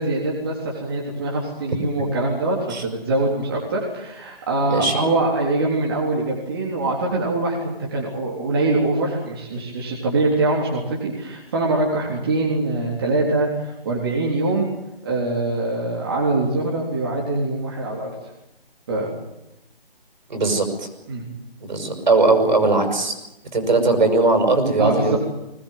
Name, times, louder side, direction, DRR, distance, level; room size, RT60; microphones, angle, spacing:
voice 1, 0.0-14.7 15.0-18.1 18.9-19.1 21.1-21.3 24.8-25.2, right 2 dB, 25° right, -3 dB, 3.8 m, -23 dB
voice 2, 4.7-5.0 20.3-20.9 21.6-23.1 23.5-25.2, right 3 dB, 50° right, 6 dB, 6.2 m, -19 dB
22.0 x 19.5 x 9.4 m, 0.90 s
hypercardioid pair, 175°, 30 cm